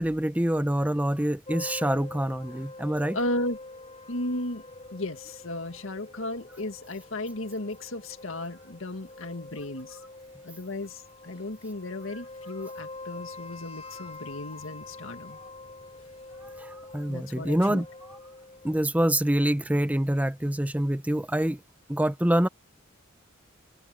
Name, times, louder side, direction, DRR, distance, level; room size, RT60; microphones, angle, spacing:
voice 1, 0.0-3.2 16.6-17.8 18.6-21.6 21.9-22.5, right 1 dB, 10° right, 0.8 m, -26 dB
sound 1, 1.5-18.8, left 2 dB, 30° left, 6.5 m, -45 dB
voice 2, 3.1-3.6 4.1-4.6 4.9-10.0 10.4-15.4 17.1-17.8, left 1 dB, 80° left, 2.0 m, -35 dB
head